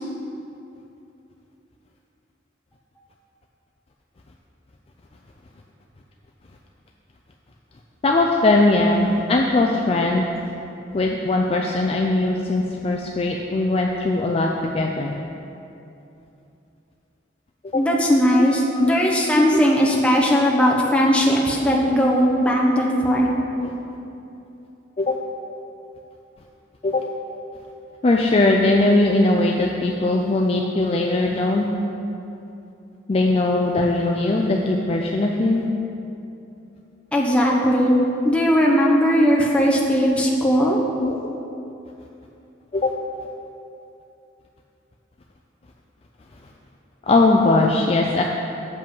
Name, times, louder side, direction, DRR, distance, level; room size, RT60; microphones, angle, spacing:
voice 1, 8.0-10.3 10.9-15.1 17.7-17.8 18.8-19.0 19.3-19.6 23.6-23.7 25.0-25.2 26.8-27.0 28.0-31.7 33.1-35.6 41.0-41.2 42.7-42.9 47.1-48.2, left 2 dB, 30° left, 0 dB, 0.3 m, -20 dB
voice 2, 17.7-23.3 37.1-38.0 38.2-40.8, equal, 5° left, -2 dB, 0.8 m, -18 dB
7.6 x 5.4 x 5.3 m, 2.8 s
head